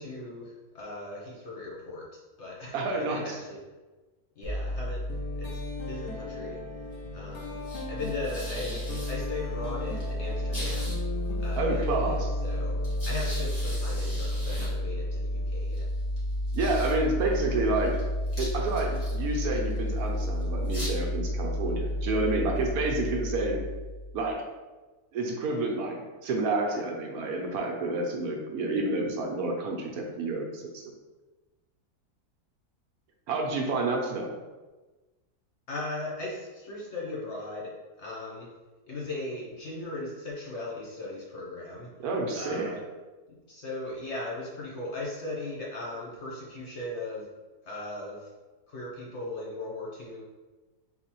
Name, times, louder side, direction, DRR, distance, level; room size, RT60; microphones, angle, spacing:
voice 1, 0.0-2.0 2.4-3.6 4.4-5.0 5.4-5.6 5.8-6.6 7.1-7.6 7.9-11.0 11.4-12.8 13.1-15.9 35.7-38.5 38.9-41.9 42.4-42.8 43.3-47.3 47.6-48.3 48.7-50.2, left 2 dB, 55° left, -4 dB, 0.9 m, -38 dB
voice 2, 2.7-3.4 11.6-12.3 16.5-18.0 18.4-23.6 24.1-24.4 25.1-30.8 33.3-34.3 42.0-42.7, right 2 dB, 70° right, 0 dB, 1.1 m, -29 dB
sound 1, 4.4-24.3, left 1 dB, 25° left, 1.4 m, -32 dB
sound 2, 5.1-15.7, left 3 dB, 80° left, 1.3 m, -40 dB
4.1 x 3.8 x 2.9 m, 1.2 s
omnidirectional pair, 1.7 m